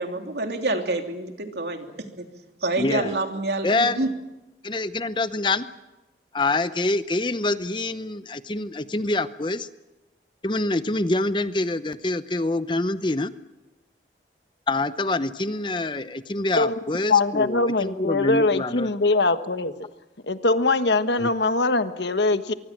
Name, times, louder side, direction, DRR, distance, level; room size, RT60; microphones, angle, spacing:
voice 1, 0.0-2.0 2.6-4.1, right 2 dB, 70° right, 4 dB, 3.1 m, -27 dB
voice 2, 2.8-3.1 3.6-4.1 4.6-5.7 6.3-9.7 10.4-13.3 14.7-18.9 21.2-21.3, left 2 dB, 25° left, 12 dB, 0.8 m, -26 dB
voice 3, 17.1-19.9 20.3-22.5, left 3 dB, 75° left, 10 dB, 1.4 m, -22 dB
24.5 x 23.5 x 7.5 m, 1.0 s
head